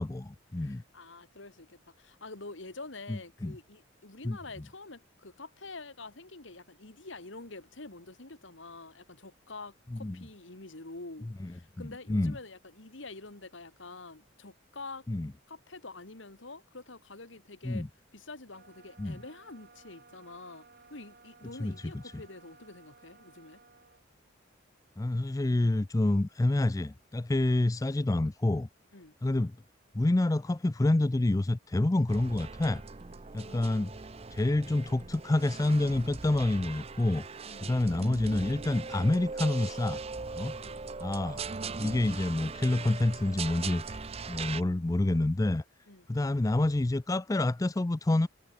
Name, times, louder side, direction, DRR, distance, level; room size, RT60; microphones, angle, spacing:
voice 1, 0.0-0.8 3.1-3.6 4.2-4.4 9.9-10.2 11.4-11.5 12.1-12.4 15.1-15.3 17.6-17.9 19.0-19.2 21.6-21.9 25.0-28.7 29.2-29.6 29.9-32.8 33.3-33.9 34.3-37.3 37.6-40.0 40.3-40.5 41.0-41.4 41.8-45.6 46.1-48.3, left 2 dB, 15° left, 0.4 m, -28 dB
voice 2, 0.6-15.1 15.5-17.8 18.1-23.6 28.9-29.1 33.4-33.9 37.4-37.7 40.6-40.8 45.9-46.1, left 3 dB, 70° left, 2.3 m, -47 dB
sound 1, 18.5-24.0, right 4 dB, 50° right, 1.9 m, -58 dB
sound 2, 32.1-44.6, right 4 dB, 30° right, 0.6 m, -40 dB
head